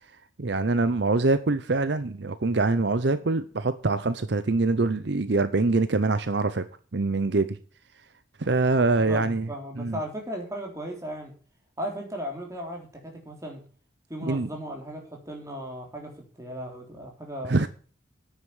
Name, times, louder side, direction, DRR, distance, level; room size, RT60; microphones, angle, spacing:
voice 1, 0.4-6.6 6.9-7.6 8.4-9.5 9.8-10.0 14.2-14.5 17.4-17.7, right 3 dB, 60° right, 0.7 m, -24 dB
voice 2, 9.0-11.3 11.8-13.6 14.1-17.7, equal, 15° right, 3.4 m, -36 dB
9.8 x 8.0 x 7.2 m
head